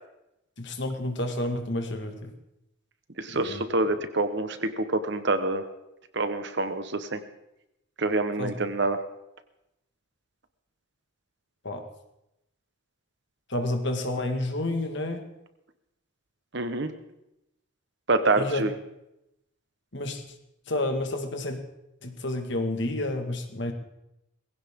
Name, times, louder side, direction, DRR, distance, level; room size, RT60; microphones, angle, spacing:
voice 1, 0.6-2.3 3.3-3.6 8.4-8.5 11.6-11.8 13.5-15.3 18.4-18.6 19.9-20.2 20.7-21.6 22.0-23.7, left 1 dB, 55° left, 6 dB, 1.8 m, -30 dB
voice 2, 3.2-5.6 6.1-7.2 8.0-9.0 16.5-16.9 18.1-18.7, right 2 dB, 55° right, 9 dB, 1.2 m, -26 dB
20.0 x 16.0 x 3.7 m, 0.87 s
head